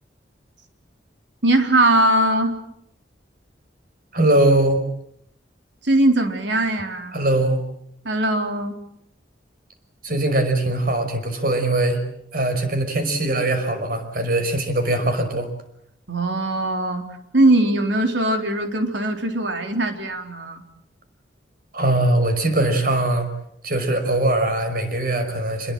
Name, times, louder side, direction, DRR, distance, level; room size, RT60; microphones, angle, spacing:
voice 1, 1.4-2.6 5.8-7.2 8.0-8.8 16.1-17.0 17.3-20.6, right 1 dB, 80° right, 5 dB, 3.7 m, -20 dB
voice 2, 4.1-4.9 7.1-7.6 10.0-12.0 12.3-15.5 21.7-23.3 23.6-25.7, right 1 dB, 50° right, 7 dB, 5.5 m, -21 dB
27.0 x 22.0 x 7.7 m, 0.74 s
head